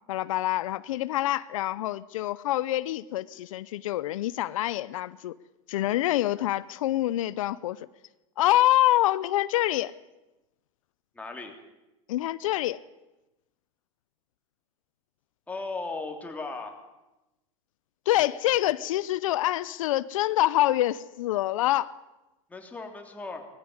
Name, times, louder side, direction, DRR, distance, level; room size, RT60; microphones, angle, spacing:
voice 1, 0.1-5.3 5.7-7.9 8.4-9.9 12.1-12.8 18.1-21.9, left 15 dB, 85° left, 17 dB, 0.7 m, -26 dB
voice 2, 11.1-11.5 15.5-16.8 22.5-23.5, left 3 dB, 10° left, 3 dB, 3.1 m, -36 dB
19.5 x 14.5 x 9.8 m, 1.0 s
supercardioid pair, 135°, 17 cm